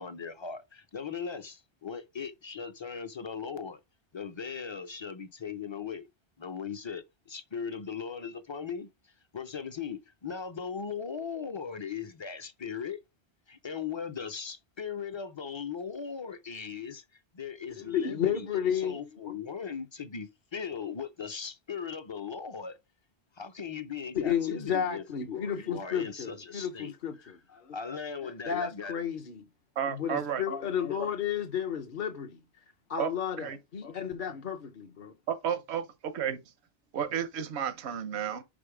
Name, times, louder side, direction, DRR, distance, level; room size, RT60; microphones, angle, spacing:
voice 1, 0.0-3.8 4.1-6.1 6.4-8.9 9.3-13.0 13.5-17.0 17.3-18.5 18.7-22.8 23.4-25.0 25.6-26.9 27.2-27.3 27.7-29.0, left 6 dB, 35° left, 0.4 m, -38 dB
voice 2, 17.8-19.0 19.2-19.3 24.1-27.7 28.2-29.5 29.9-32.4 32.9-35.1, left 8 dB, 55° left, 0.8 m, -32 dB
voice 3, 29.8-30.4 33.0-33.1 33.4-33.6 35.3-35.8 36.1-36.4 36.9-38.4, right 8 dB, 85° right, 1.0 m, -32 dB
5.4 x 5.1 x 4.8 m
omnidirectional pair, 1.1 m